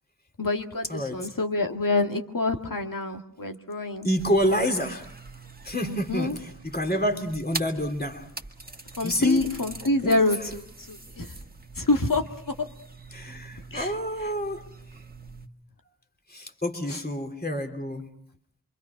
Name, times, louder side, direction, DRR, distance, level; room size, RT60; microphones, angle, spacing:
voice 1, 0.4-4.1 5.8-6.4 9.0-11.4 11.8-12.6 13.7-14.3 16.9-17.0, left 2 dB, 65° left, 4 dB, 2.0 m, -27 dB
voice 2, 0.9-1.3 4.0-5.1 5.6-8.3 9.0-9.4 10.0-10.1 13.1-14.7 16.3-18.1, equal, 25° left, 4 dB, 3.2 m, -28 dB
sound 1, 4.2-15.5, right 3 dB, 25° right, 1.8 m, -43 dB
27.0 x 24.5 x 5.9 m, 0.65 s
wide cardioid pair, 40°, 36 cm